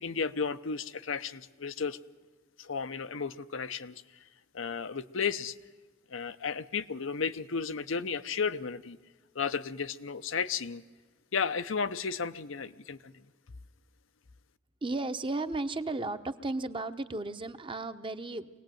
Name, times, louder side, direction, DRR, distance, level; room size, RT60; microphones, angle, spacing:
voice 1, 0.0-2.0 2.6-4.2 4.5-5.5 6.1-9.0 9.3-10.8 11.3-13.2, left 5 dB, 75° left, 11 dB, 0.8 m, -33 dB
voice 2, 14.8-18.5, right 2 dB, 25° right, 9 dB, 0.9 m, -34 dB
24.0 x 18.5 x 9.2 m, 1.4 s
head